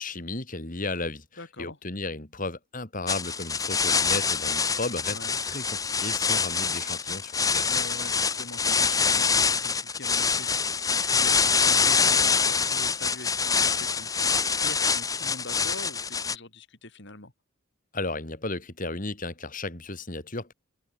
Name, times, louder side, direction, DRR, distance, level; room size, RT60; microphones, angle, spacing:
voice 1, 0.0-1.3 1.6-5.2 5.4-7.7 17.9-20.5, left 2 dB, 40° left, 2.5 m, -34 dB
voice 2, 1.4-1.8 5.1-5.4 7.6-17.3, left 2 dB, 55° left, 3.6 m, -44 dB
sound 1, 3.1-16.4, left 5 dB, 15° left, 0.9 m, -25 dB
head